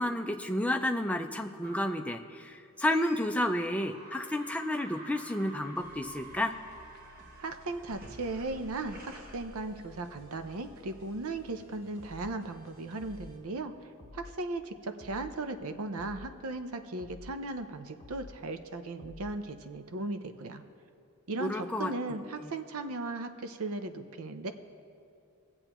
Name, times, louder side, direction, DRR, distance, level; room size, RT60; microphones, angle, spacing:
voice 1, 0.0-6.5 21.4-21.9, left 1 dB, 5° left, 5 dB, 0.4 m, -31 dB
sound 1, 1.6-2.2 2.8-3.4 3.7-10.2, right 1 dB, 45° right, 1.5 m, -49 dB
sound 2, 5.7-13.4, equal, 85° right, 2.0 m, -56 dB
voice 2, 7.4-13.7 14.1-20.6 21.3-24.5, right 2 dB, 70° right, 8 dB, 0.7 m, -37 dB
sound 3, 12.0-12.4 13.0-13.4 14.0-14.4 15.0-15.4 16.0-16.4 17.0-17.4 18.0-18.4 19.0-19.4, left 2 dB, 35° left, 0.9 m, -49 dB
21.5 x 7.8 x 3.0 m, 2.4 s
head